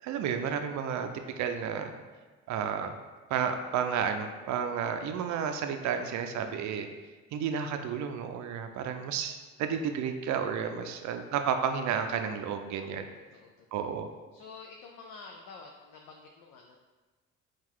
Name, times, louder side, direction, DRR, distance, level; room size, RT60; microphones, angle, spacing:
voice 1, 0.0-1.1 1.4-1.9 2.5-2.9 3.3-6.9 7.3-13.0 13.7-14.1, right 7 dB, 65° right, 7 dB, 0.5 m, -31 dB
voice 2, 8.7-9.1 10.6-11.0 12.8-13.7 14.3-16.8, left 4 dB, 80° left, 1 dB, 0.5 m, -50 dB
3.8 x 2.4 x 4.5 m, 1.3 s
supercardioid pair, 70°, 32 cm